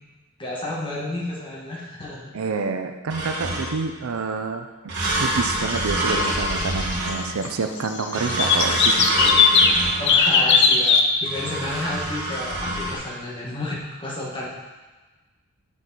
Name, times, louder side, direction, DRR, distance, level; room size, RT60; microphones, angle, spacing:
voice 1, 0.4-2.3 10.0-14.5, left 1 dB, 25° left, -5 dB, 1.4 m, -31 dB
voice 2, 2.3-9.1, right 4 dB, 70° right, 6 dB, 0.5 m, -28 dB
sound 1, 3.1-3.9 4.9-7.6 8.1-10.3 11.2-13.0, right 1 dB, 55° right, 1.6 m, -26 dB
sound 2, 5.6-7.2 7.4-7.5 7.8-9.8 10.1-11.0, left 5 dB, 55° left, 0.6 m, -19 dB
8.4 x 4.5 x 4.1 m, 1.2 s
head